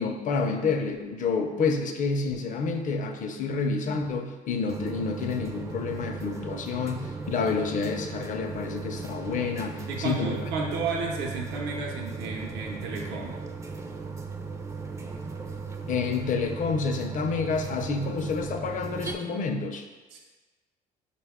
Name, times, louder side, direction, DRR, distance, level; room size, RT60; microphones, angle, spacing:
voice 1, 0.0-10.4 15.9-19.9, left 4 dB, 50° left, 5 dB, 0.5 m, -29 dB
sound 1, 4.7-19.1, right 4 dB, 20° right, 0.4 m, -37 dB
voice 2, 9.9-13.4 20.1-20.2, right 4 dB, 85° right, 0 dB, 0.6 m, -32 dB
5.3 x 2.2 x 3.5 m, 1.3 s
cardioid pair, 110°, 17 cm